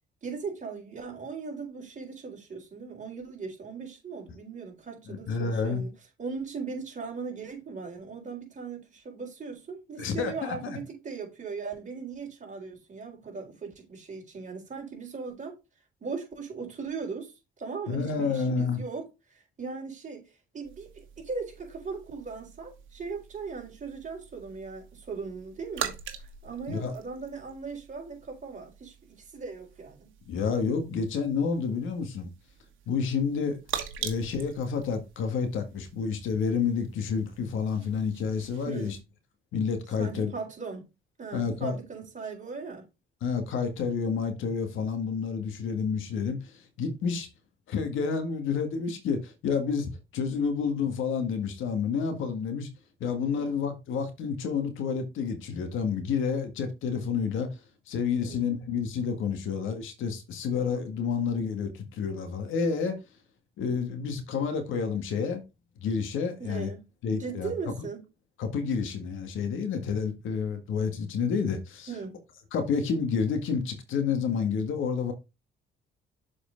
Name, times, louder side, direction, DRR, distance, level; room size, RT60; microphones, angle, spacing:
voice 1, 0.2-5.9 6.2-15.5 16.0-20.2 20.5-30.1 38.6-39.0 40.0-40.8 41.2-42.9 53.3-53.6 58.2-58.5 66.4-66.8 67.2-68.0 71.9-72.2, right 5 dB, 40° right, 4.0 m, -38 dB
voice 2, 5.1-5.8 10.0-10.8 17.9-18.8 26.7-26.9 30.3-32.3 32.9-33.6 34.0-39.0 39.5-40.3 41.3-41.7 43.2-47.3 47.7-52.7 53.0-57.5 57.9-63.0 63.6-65.4 65.8-66.7 67.0-67.5 68.4-71.9 72.5-75.1, left 5 dB, 80° left, 1.8 m, -29 dB
sound 1, 20.6-39.0, right 9 dB, 80° right, 1.4 m, -44 dB
7.1 x 4.9 x 3.9 m
cardioid pair, 90°, 20 cm